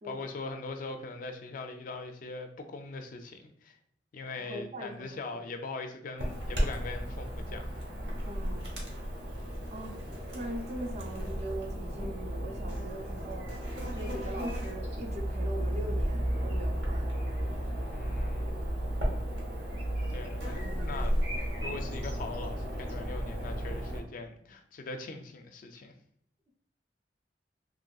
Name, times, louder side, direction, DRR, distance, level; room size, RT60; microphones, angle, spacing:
voice 1, 0.0-3.7 4.1-7.7 17.9-18.5 20.1-21.1 21.6-25.9, left 3 dB, 50° left, 6 dB, 0.3 m, -41 dB
voice 2, 4.3-5.4 8.2-8.7 9.7-10.0 10.3-13.5 13.9-17.1, right 1 dB, 40° right, 2 dB, 0.5 m, -41 dB
Chirp tweet / Buzz, 6.2-24.0, equal, 65° right, 0.9 m, -33 dB
3.0 x 2.6 x 2.2 m, 0.66 s
head